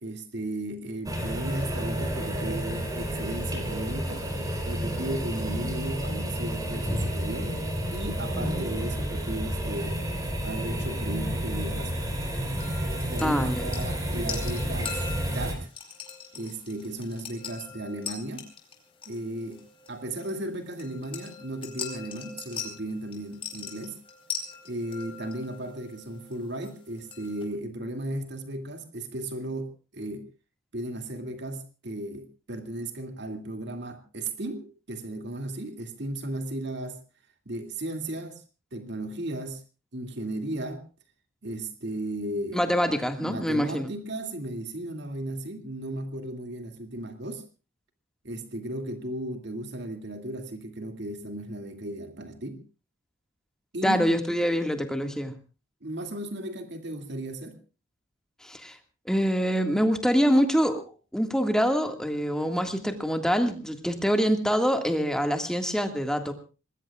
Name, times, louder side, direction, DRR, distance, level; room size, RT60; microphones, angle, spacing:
voice 1, 0.0-4.3 4.7-7.6 7.9-10.0 10.4-11.9 13.1-15.7 16.3-18.5 19.1-24.0 24.6-30.3 30.7-37.0 37.5-38.4 38.7-39.6 39.9-40.8 41.4-42.6 43.2-47.5 48.2-52.6 53.7-54.1 55.8-57.6, right 1 dB, 55° right, 6 dB, 2.3 m, -35 dB
sound 1, 1.1-15.6, equal, 20° right, 3.9 m, -30 dB
sound 2, 12.6-27.4, left 6 dB, 25° left, 3.9 m, -41 dB
voice 2, 13.2-13.7 42.5-43.9 53.8-55.4 58.4-58.8 59.1-60.8 61.1-66.3, equal, 5° left, 5 dB, 1.8 m, -25 dB
26.5 x 20.5 x 2.4 m, 0.33 s
head